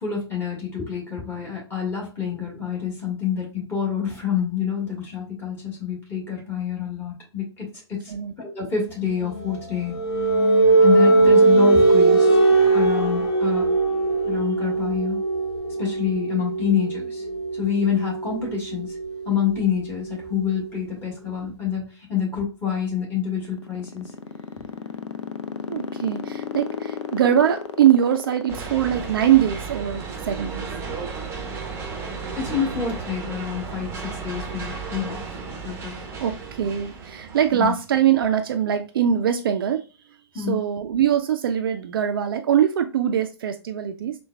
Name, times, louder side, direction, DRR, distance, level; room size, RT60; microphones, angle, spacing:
voice 1, 0.0-8.1 8.4-9.9 10.8-12.4 12.7-13.7 14.3-15.2 15.8-17.2 17.5-18.9 19.2-24.1 32.4-35.4 35.6-36.1 37.5-37.7 40.3-40.6, left 7 dB, 15° left, -4 dB, 1.5 m, -27 dB
sound 1, 9.1-20.6, right 2 dB, 50° left, 1.4 m, -20 dB
sound 2, 23.3-29.9, left 6 dB, 75° left, 0.4 m, -33 dB
voice 2, 25.7-30.7 36.2-39.8 40.3-44.2, right 9 dB, 50° right, 7 dB, 0.4 m, -22 dB
sound 3, 28.5-37.7, right 5 dB, 15° right, 0.7 m, -34 dB
4.3 x 2.2 x 2.3 m, 0.32 s
figure-of-eight pair, 115°, 15 cm